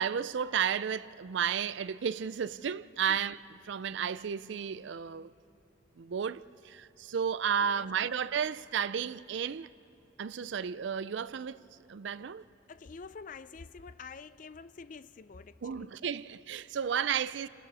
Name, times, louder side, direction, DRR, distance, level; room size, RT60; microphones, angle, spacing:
voice 1, 0.0-3.4 3.6-5.3 6.0-9.7 10.2-11.6 11.9-12.4 15.6-17.5, right 7 dB, 65° right, 0.4 m, -33 dB
voice 2, 12.7-15.9 17.0-17.1, left 4 dB, 40° left, 0.4 m, -47 dB
30.0 x 27.0 x 4.2 m
head